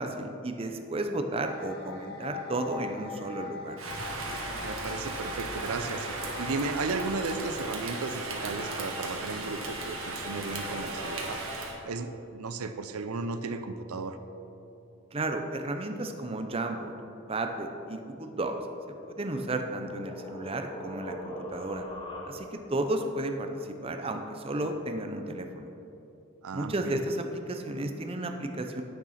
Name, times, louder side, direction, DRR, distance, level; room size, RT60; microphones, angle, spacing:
voice 1, 0.0-3.8 15.1-16.9 17.3-18.6 18.9-21.9 22.2-25.7 26.5-28.8, right 2 dB, 25° right, 5 dB, 0.6 m, -33 dB
sound 1, 1.4-11.7, left 5 dB, 45° left, 1.0 m, -44 dB
Rain, 3.8-11.8, right 2 dB, 70° right, 1.5 m, -36 dB
voice 2, 4.6-11.4 11.8-14.2 26.4-27.0, right 3 dB, 85° right, 9 dB, 0.5 m, -35 dB
sound 2, 19.0-22.7, equal, 25° left, 1.2 m, -42 dB
9.0 x 6.8 x 5.7 m, 2.9 s
head